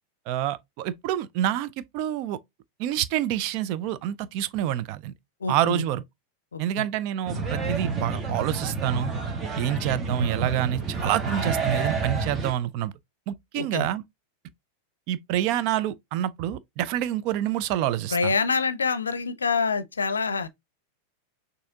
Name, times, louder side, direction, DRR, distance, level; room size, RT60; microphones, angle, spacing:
voice 1, 0.3-2.4 2.8-5.1 5.5-6.0 6.6-9.1 9.6-12.9 13.3-14.0 15.1-18.3, right 12 dB, 45° right, 0.4 m, -27 dB
voice 2, 5.4-5.8 6.5-6.8 13.5-13.9 18.1-20.5, left 5 dB, 75° left, 0.5 m, -26 dB
sound 1, 7.3-12.5, right 4 dB, 25° right, 1.0 m, -29 dB
6.2 x 2.6 x 2.7 m
figure-of-eight pair, 90°, 0 cm